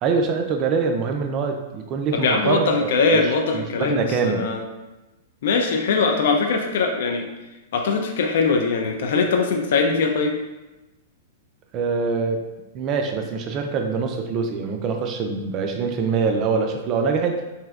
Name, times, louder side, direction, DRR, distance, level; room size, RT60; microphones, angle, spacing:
voice 1, 0.0-3.0 3.2-4.5 11.7-12.4 12.7-17.4, right 5 dB, 30° right, 4 dB, 0.3 m, -24 dB
voice 2, 2.1-4.6 5.4-7.2 7.7-10.3, left 4 dB, 65° left, 3 dB, 0.3 m, -21 dB
3.2 x 2.6 x 2.4 m, 1.1 s
supercardioid pair, 155°, 0 cm